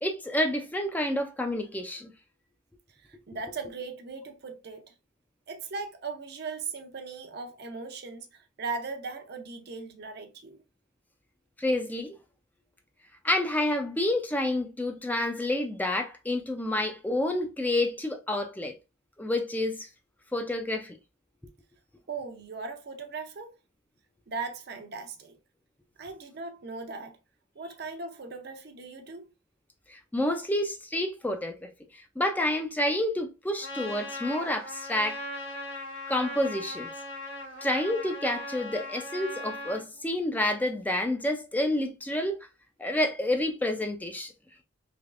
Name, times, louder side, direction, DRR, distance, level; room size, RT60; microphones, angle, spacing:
voice 1, 0.0-2.1 11.6-12.1 13.2-18.7 19.2-19.9 20.3-21.0 29.9-31.5 32.2-35.2 36.1-36.9 37.6-42.4 42.8-44.3, left 1 dB, 10° left, 0.4 m, -29 dB
voice 2, 3.0-4.9 5.5-10.6 22.1-23.5 24.3-25.4 26.0-27.2 27.6-29.3, right 4 dB, 55° right, 0.6 m, -38 dB
Trumpet, 33.6-39.8, left 1 dB, 75° left, 1.5 m, -39 dB
3.4 x 3.1 x 2.4 m
head